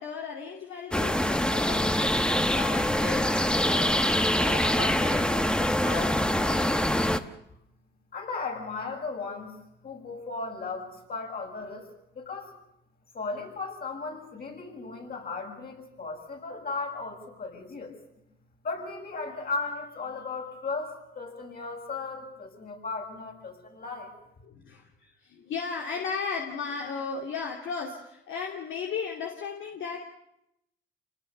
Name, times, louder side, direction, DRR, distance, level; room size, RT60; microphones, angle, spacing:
voice 1, 0.0-7.0 24.4-30.0, left 5 dB, 75° left, 1 dB, 2.7 m, -36 dB
sound 1, 0.9-7.2, left 1 dB, 5° left, 1.2 m, -24 dB
voice 2, 8.1-9.5 9.8-11.8 12.1-12.5 13.1-17.9 18.6-24.1, left 4 dB, 50° left, 1 dB, 7.3 m, -36 dB
27.5 x 19.0 x 6.9 m, 0.83 s
cardioid pair, 90°, 20 cm